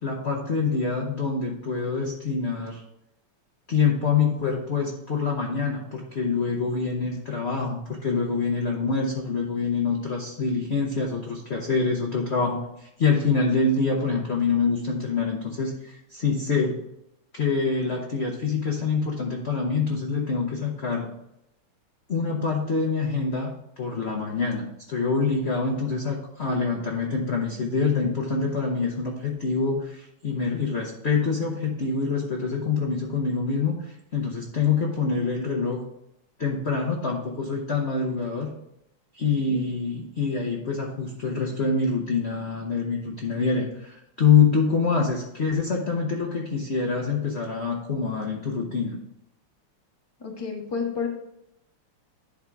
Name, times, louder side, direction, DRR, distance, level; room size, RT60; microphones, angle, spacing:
voice 1, 0.0-2.8 3.7-16.8 17.3-21.1 22.1-23.5 23.8-35.8 36.4-38.5 39.1-49.0, left 5 dB, 45° left, -1 dB, 0.9 m, -25 dB
voice 2, 50.2-51.1, left 5 dB, 15° left, 0 dB, 1.0 m, -30 dB
11.0 x 3.7 x 4.6 m, 0.82 s
omnidirectional pair, 2.4 m